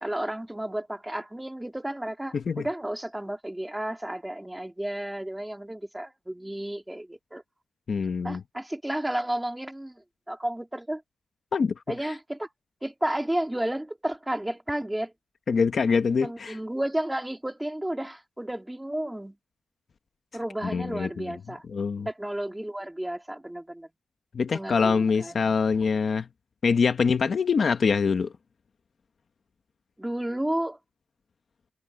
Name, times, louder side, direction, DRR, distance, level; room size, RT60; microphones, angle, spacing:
voice 1, 0.0-7.4 8.2-11.0 11.9-12.5 12.8-15.1 16.2-19.4 20.3-21.6 22.1-23.9 24.5-25.6 30.0-30.8, right 1 dB, 5° right, 2.4 m, -32 dB
voice 2, 7.9-8.4 11.5-11.7 12.0-12.1 15.5-16.6 20.6-22.1 24.3-26.3 26.6-28.3, left 5 dB, 45° left, 1.2 m, -24 dB
wide cardioid pair, 165°, 0 cm